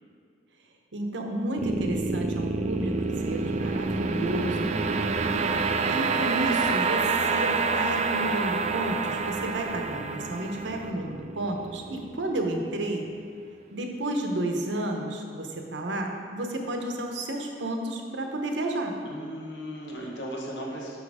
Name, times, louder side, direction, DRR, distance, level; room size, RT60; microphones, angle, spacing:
voice 1, 0.9-4.9 5.9-13.1 13.7-19.0, right 1 dB, 85° right, 2 dB, 0.9 m, -31 dB
sound 1, 1.6-12.8, right 4 dB, 40° right, 0.4 m, -28 dB
voice 2, 19.0-21.0, equal, 80° left, -2 dB, 1.4 m, -36 dB
6.3 x 5.6 x 4.8 m, 2.4 s
head